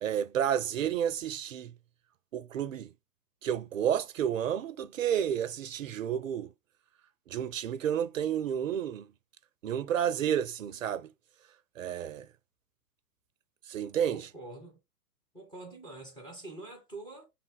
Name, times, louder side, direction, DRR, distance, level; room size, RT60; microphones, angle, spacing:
voice 1, 0.0-1.7 2.3-2.9 3.4-6.5 7.3-9.1 9.6-11.1 11.8-12.3 13.7-14.3, right 9 dB, 55° right, 0.5 m, -31 dB
voice 2, 14.1-14.8 15.3-17.3, right 2 dB, 10° left, 1.2 m, -45 dB
7.1 x 3.0 x 2.2 m
figure-of-eight pair, 120°, 47 cm